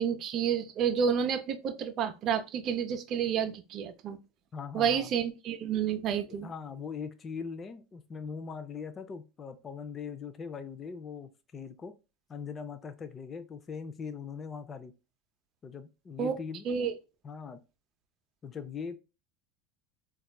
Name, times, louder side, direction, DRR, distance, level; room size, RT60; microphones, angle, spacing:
voice 1, 0.0-4.2 4.7-6.5 16.2-16.3 16.6-16.9, right 7 dB, 45° right, 0.5 m, -30 dB
voice 2, 4.5-5.1 6.3-11.9 12.3-14.9 15.6-16.6 17.2-17.6 18.4-19.0, left 6 dB, 30° left, 0.5 m, -41 dB
4.1 x 2.3 x 2.2 m
supercardioid pair, 110°, 0 cm